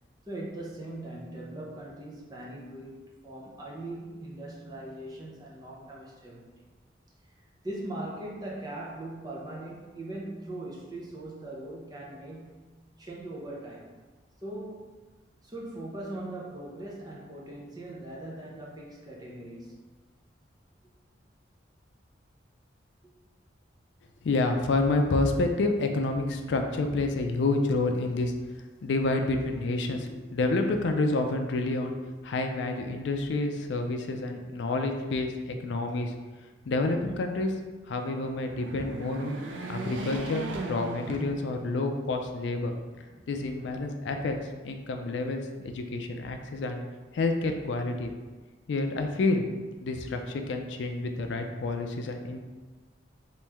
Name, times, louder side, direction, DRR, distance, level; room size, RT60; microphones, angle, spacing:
voice 1, 0.3-6.5 7.6-12.6 13.0-13.9 14.4-15.0 15.4-19.7 43.1-43.3, right 1 dB, 20° right, -4 dB, 0.6 m, -40 dB
voice 2, 24.2-28.3 28.8-31.9 32.2-36.1 36.7-37.5 37.9-39.4 39.7-42.7 43.3-44.4 44.6-46.8 47.1-48.1 48.7-49.5 49.8-52.4, left 2 dB, 75° left, 5 dB, 0.4 m, -28 dB
sound 1, 38.3-41.9 42.4-42.5 43.6-44.4, right 2 dB, 80° right, 0.5 m, -38 dB
3.1 x 3.1 x 3.4 m, 1.3 s
head